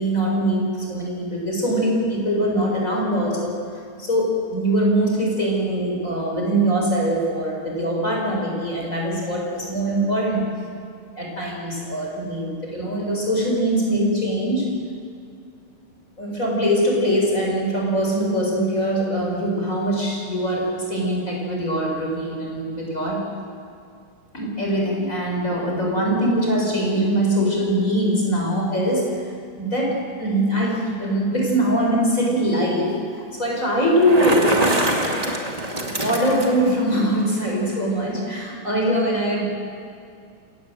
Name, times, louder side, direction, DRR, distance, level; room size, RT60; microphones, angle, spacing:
voice 1, 0.0-3.6 4.0-10.4 11.1-14.9 16.2-23.3 24.3-29.3 29.6-33.0 33.4-35.3 36.0-39.4, right 1 dB, 20° left, -1 dB, 5.0 m, -22 dB
Bicycle, 33.8-36.7, right 1 dB, 20° right, 1.1 m, -24 dB
28.0 x 17.5 x 7.8 m, 2.4 s
omnidirectional pair, 4.2 m